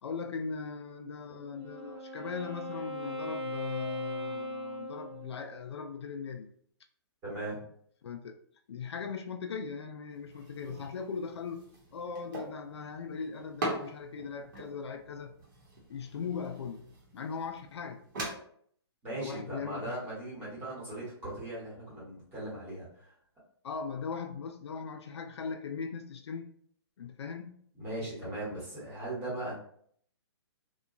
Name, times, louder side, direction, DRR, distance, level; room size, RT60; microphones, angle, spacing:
voice 1, 0.0-6.5 8.0-8.4 8.7-11.6 11.9-15.3 15.9-16.8 17.1-18.0 19.1-20.0 23.6-26.5 27.0-27.6, left 5 dB, 70° left, 0.4 m, -39 dB
Wind instrument woodwind instrument, 1.3-5.7, left 1 dB, 75° right, 1.1 m, -39 dB
voice 2, 7.2-7.6 19.0-23.1 27.8-29.5, right 1 dB, 15° right, 1.0 m, -38 dB
sound 1, 10.1-18.3, right 1 dB, 45° right, 0.9 m, -42 dB
2.8 x 2.2 x 2.5 m
hypercardioid pair, 165°, 14 cm